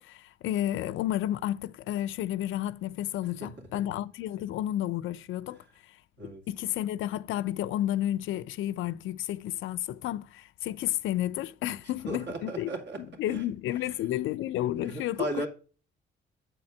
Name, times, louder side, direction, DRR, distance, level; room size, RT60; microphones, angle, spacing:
voice 1, 0.0-5.6 6.2-12.7 13.2-15.4, left 13 dB, 80° left, 0.5 m, -31 dB
voice 2, 3.4-3.8 6.2-6.4 12.1-13.4 13.7-13.9 14.7-15.5, right 2 dB, 65° right, 2.2 m, -37 dB
8.3 x 4.5 x 6.2 m
cardioid pair, 90°, 20 cm